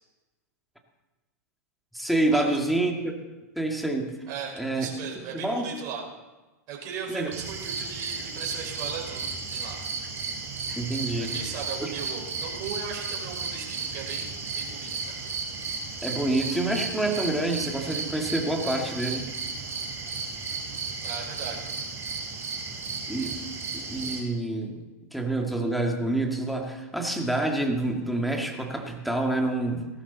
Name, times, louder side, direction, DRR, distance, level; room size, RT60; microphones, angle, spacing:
voice 1, 1.9-3.2 3.6-4.1 4.6-4.9 5.3-5.7 7.1-7.3 10.7-11.4 11.8-11.9 16.0-19.3 23.1-23.5 23.7-29.9, right 2 dB, ahead, 1 dB, 2.2 m, -27 dB
voice 2, 4.3-6.0 6.7-9.8 11.2-15.2 21.0-21.6, right 6 dB, 45° right, -1 dB, 5.4 m, -37 dB
sound 1, 7.3-24.2, right 4 dB, 30° right, 4.2 m, -34 dB
17.5 x 13.5 x 4.2 m, 1.1 s
hypercardioid pair, 110°, 9 cm